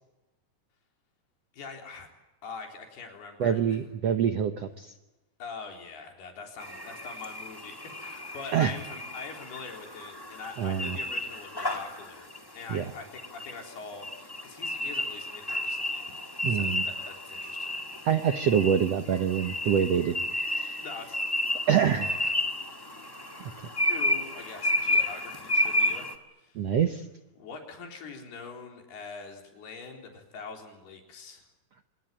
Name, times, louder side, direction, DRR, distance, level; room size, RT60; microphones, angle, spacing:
voice 1, 1.5-2.1 2.4-3.6 5.4-17.9 20.8-21.2 23.9-26.1 26.4-26.7 27.4-31.4, left 5 dB, 85° left, 3 dB, 5.9 m, -43 dB
voice 2, 3.4-4.9 8.5-8.7 10.6-11.0 12.7-12.8 16.4-16.8 18.0-20.8 21.7-22.3 26.5-27.0, right 8 dB, 75° right, 8 dB, 1.5 m, -26 dB
sound 1, 6.6-26.1, left 1 dB, 35° left, 0.3 m, -32 dB
26.5 x 20.5 x 8.9 m, 1.0 s
omnidirectional pair, 4.4 m